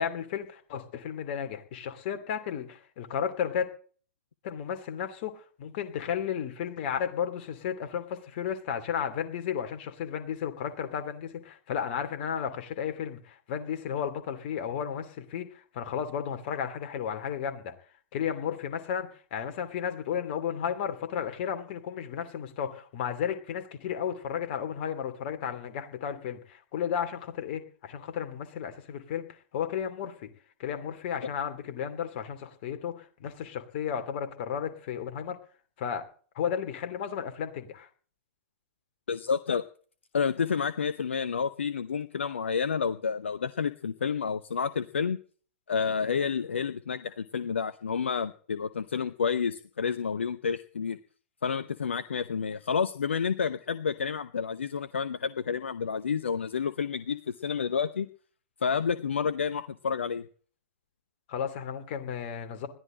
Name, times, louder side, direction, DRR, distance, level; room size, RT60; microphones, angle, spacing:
voice 1, 0.0-3.7 4.4-15.5 15.7-17.7 18.1-30.3 30.6-35.4 35.8-36.1 36.3-37.9 61.3-62.7, left 8 dB, 45° left, 7 dB, 2.7 m, -33 dB
voice 2, 39.1-39.6 40.1-45.2 45.7-51.0 51.4-58.1 58.6-60.2, left 6 dB, 65° left, 13 dB, 0.8 m, -30 dB
21.0 x 14.0 x 3.9 m, 0.43 s
figure-of-eight pair, 105°, 7 cm